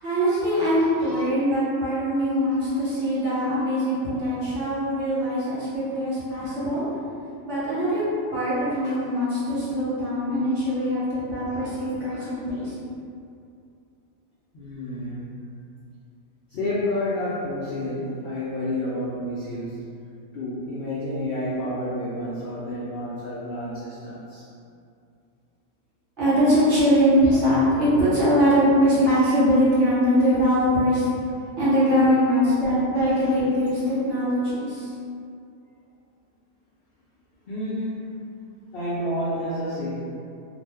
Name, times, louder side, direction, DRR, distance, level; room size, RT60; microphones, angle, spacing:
voice 1, 0.0-6.9 7.5-8.0 8.3-12.7 26.2-31.1 31.6-34.9, equal, 55° right, -10 dB, 1.2 m, -22 dB
voice 2, 14.5-15.3 16.5-19.8 20.3-24.5 33.0-33.4 37.5-38.1 38.7-40.0, left 1 dB, 70° left, -8 dB, 0.5 m, -30 dB
2.5 x 2.1 x 3.3 m, 2.5 s
omnidirectional pair, 1.5 m